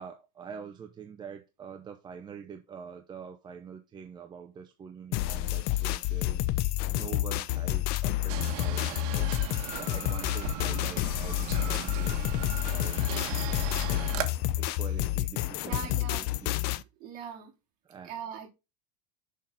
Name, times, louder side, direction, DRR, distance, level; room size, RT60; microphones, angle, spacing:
voice 1, 0.0-13.7 14.5-16.8 17.8-18.1, right 7 dB, 20° right, 0.7 m, -45 dB
sound 1, 5.1-16.8, left 16 dB, 50° left, 0.5 m, -29 dB
sound 2, 8.3-14.2, right 10 dB, 65° right, 1.5 m, -37 dB
voice 2, 15.6-16.3 17.0-17.5 18.0-18.5, right 8 dB, 45° right, 3.3 m, -40 dB
6.4 x 5.8 x 3.9 m
supercardioid pair, 135°, 20 cm